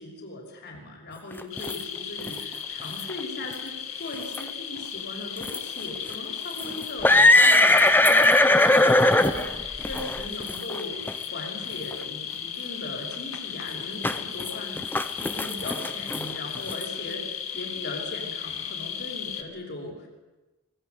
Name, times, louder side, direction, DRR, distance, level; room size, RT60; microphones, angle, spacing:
voice 1, 0.0-14.9 15.2-20.1, left 2 dB, 50° left, 1 dB, 6.1 m, -38 dB
sound 1, 1.3-1.8 2.2-2.4 3.0-3.1 3.5-3.6 4.1-4.5 5.4-5.6 6.1-6.2 6.6-10.8 11.1-11.2 11.9-12.0 14.0-14.5 14.8-16.8, left 2 dB, 10° left, 1.1 m, -20 dB
sound 2, 1.5-19.4, left 8 dB, 70° left, 2.5 m, -36 dB
25.5 x 20.5 x 8.3 m, 1.1 s
head